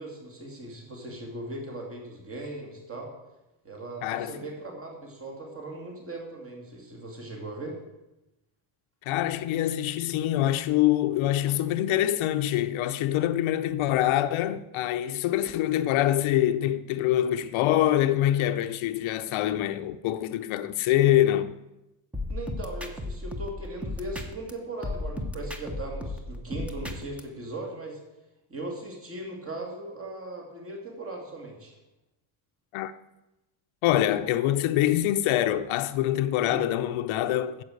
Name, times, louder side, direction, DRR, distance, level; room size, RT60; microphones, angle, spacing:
voice 1, 0.0-3.1 3.6-7.8 22.3-28.0 28.5-31.7 36.4-36.6, right 1 dB, 25° right, 2.5 m, -38 dB
voice 2, 4.0-4.4 9.1-21.5 32.7-32.9 33.8-37.6, left 12 dB, 75° left, 0.7 m, -25 dB
sound 1, 22.1-24.5 24.8-27.2, left 1 dB, 5° right, 0.8 m, -34 dB
9.7 x 7.4 x 7.9 m
cardioid pair, 160°, 49 cm